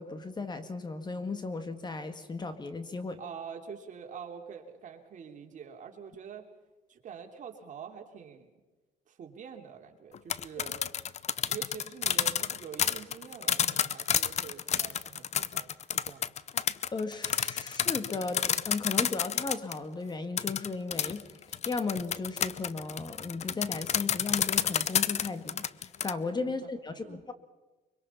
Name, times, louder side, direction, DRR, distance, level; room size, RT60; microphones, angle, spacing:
voice 1, 0.0-3.2 16.9-27.3, left 3 dB, 25° left, 9 dB, 1.8 m, -36 dB
voice 2, 3.2-6.5 6.9-8.5 9.1-10.8 11.5-15.7 16.0-16.3 26.6-26.7 26.9-27.2, right 7 dB, 50° right, 3 dB, 3.2 m, -45 dB
sound 1, 10.1-19.8 20.4-26.1, left 8 dB, 40° left, 0.7 m, -29 dB
24.0 x 24.0 x 5.7 m, 1.2 s
cardioid pair, 110°, 17 cm